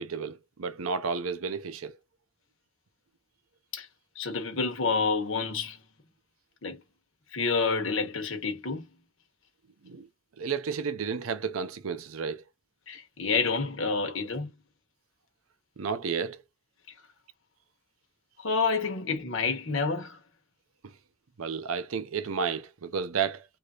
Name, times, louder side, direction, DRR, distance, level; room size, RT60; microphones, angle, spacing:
voice 1, 0.0-2.0 9.8-10.1 10.4-12.4 15.8-16.4 20.8-20.9 21.4-23.4, right 6 dB, 75° right, 0.6 m, -32 dB
voice 2, 4.1-5.8 6.6-6.8 7.3-8.8 12.9-14.5 18.4-20.2, left 4 dB, 60° left, 1.1 m, -28 dB
3.2 x 2.7 x 2.4 m
head